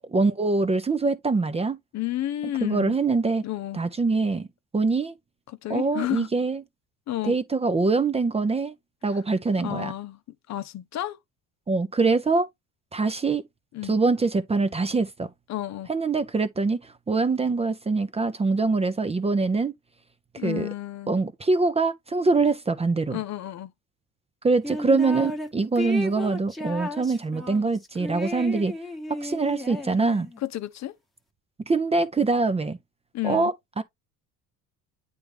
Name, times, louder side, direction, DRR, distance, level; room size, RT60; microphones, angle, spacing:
voice 1, 0.1-1.8 2.6-3.4 3.7-4.5 4.7-5.1 5.7-6.6 7.3-8.7 9.0-9.9 11.7-12.5 12.9-13.4 13.8-15.3 15.9-16.8 17.1-19.7 20.4-20.7 21.1-23.2 24.4-28.7 29.1-30.3 31.7-32.8 33.2-33.8, right 3 dB, 15° right, 0.6 m, -24 dB
voice 2, 1.9-3.0 3.4-3.8 5.5-6.3 7.1-7.4 9.6-10.2 10.5-11.2 13.7-14.0 15.5-15.9 20.4-21.1 23.1-23.7 30.4-31.0 33.1-33.5, left 14 dB, 50° left, 0.7 m, -31 dB
sound 1, 24.6-25.5 25.8-30.4, left 1 dB, ahead, 1.1 m, -34 dB
8.6 x 3.5 x 3.4 m
supercardioid pair, 100°, 36 cm